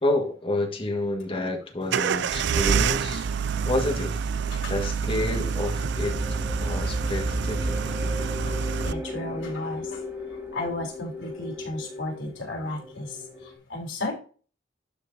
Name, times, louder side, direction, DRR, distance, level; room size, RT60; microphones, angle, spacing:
voice 1, 0.0-3.3 3.6-4.1 4.7-6.2 6.6-7.8, left 2 dB, 30° left, 3 dB, 1.6 m, -29 dB
sound 1, 1.9-8.9, right 6 dB, 65° right, 0.4 m, -27 dB
sound 2, 4.0-13.6, left 1 dB, 15° right, 1.6 m, -36 dB
voice 2, 8.0-8.6 8.8-10.0 10.3-14.1, left 2 dB, 85° left, -1 dB, 4.0 m, -34 dB
12.0 x 4.5 x 2.7 m, 0.37 s
head